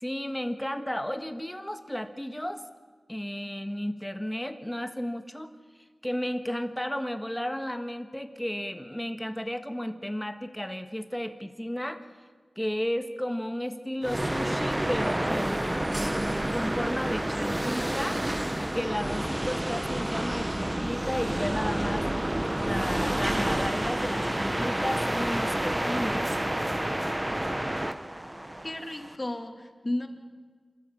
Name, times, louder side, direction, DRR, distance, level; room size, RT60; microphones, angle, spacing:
voice 1, 0.0-2.6 3.1-5.5 6.0-12.0 12.6-15.9 16.5-18.2 18.6-22.1 22.6-26.4, equal, 10° left, 9 dB, 1.6 m, -33 dB
sound 1, 14.0-29.2, right 1 dB, 20° right, 1.1 m, -29 dB
voice 2, 28.6-30.1, left 1 dB, 30° left, 6 dB, 2.5 m, -33 dB
27.0 x 13.5 x 8.8 m, 1.5 s
wide cardioid pair, 55°, 0 cm